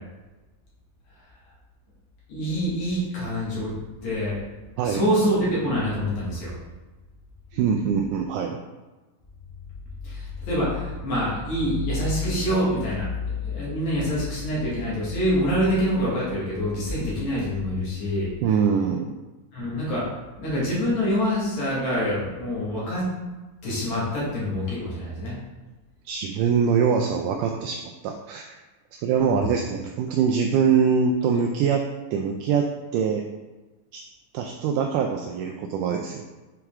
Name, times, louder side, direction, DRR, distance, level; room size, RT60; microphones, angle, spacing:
voice 1, 2.3-3.7 4.0-4.4 4.8-6.5 10.0-18.3 19.5-20.0 20.4-23.0 23.6-25.3 29.1-29.5, equal, 55° left, -7 dB, 3.1 m, -26 dB
voice 2, 7.5-8.6 18.4-19.1 26.1-28.5 29.0-31.9 32.1-33.2 33.9-34.0 34.3-36.2, right 6 dB, 85° right, 2 dB, 1.9 m, -23 dB
7.8 x 4.6 x 3.6 m, 1.2 s
omnidirectional pair, 4.1 m